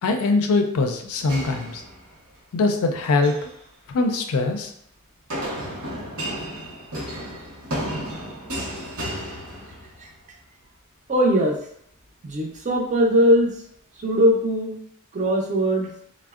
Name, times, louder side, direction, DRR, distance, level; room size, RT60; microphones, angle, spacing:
voice 1, 0.0-1.8 2.5-3.4 3.9-4.7, left 3 dB, 75° left, 5 dB, 0.4 m, -22 dB
sound 1, 1.3-2.4 3.0-3.5 5.3-10.1, equal, 70° right, 0.8 m, -32 dB
voice 2, 11.1-11.6 12.2-13.6 14.0-14.8 15.1-15.9, equal, 35° right, 0 dB, 0.5 m, -20 dB
3.4 x 2.0 x 2.4 m, 0.69 s
head